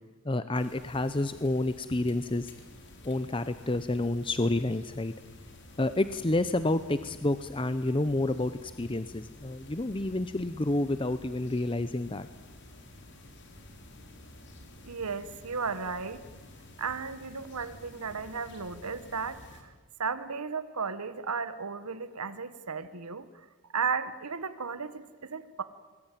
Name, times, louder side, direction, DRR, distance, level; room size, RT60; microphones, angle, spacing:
voice 1, 0.2-2.5 3.0-5.1 5.8-12.3, left 2 dB, 25° left, 12 dB, 0.7 m, -29 dB
sound 1, 0.5-19.6, left 1 dB, 50° left, 4.0 m, -51 dB
voice 2, 14.9-16.2 16.8-19.4 20.0-23.3 23.7-24.9 25.3-25.6, right 5 dB, 90° right, 12 dB, 1.2 m, -34 dB
26.5 x 21.0 x 9.1 m, 1.4 s
head